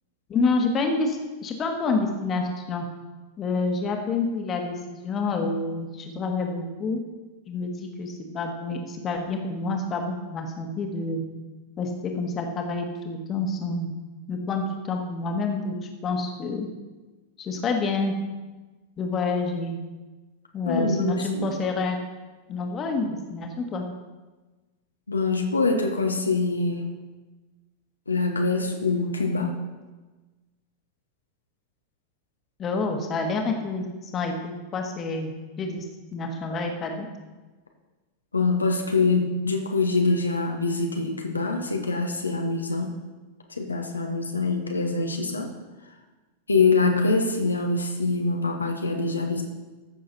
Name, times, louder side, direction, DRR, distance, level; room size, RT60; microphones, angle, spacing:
voice 1, 0.3-2.8 3.4-7.0 7.5-11.2 11.8-13.9 14.3-15.7 16.0-16.7 17.4-18.1 19.0-19.8 20.5-22.0 22.5-23.9 32.6-35.3 35.6-35.9 36.1-37.1, left 3 dB, 25° left, 3 dB, 1.6 m, -28 dB
voice 2, 20.7-21.5 25.1-26.9 28.1-29.6 38.3-42.9 43.5-45.5 46.5-49.4, left 3 dB, 80° left, 3 dB, 1.2 m, -24 dB
14.5 x 6.6 x 4.2 m, 1.2 s
figure-of-eight pair, 90°, 0 cm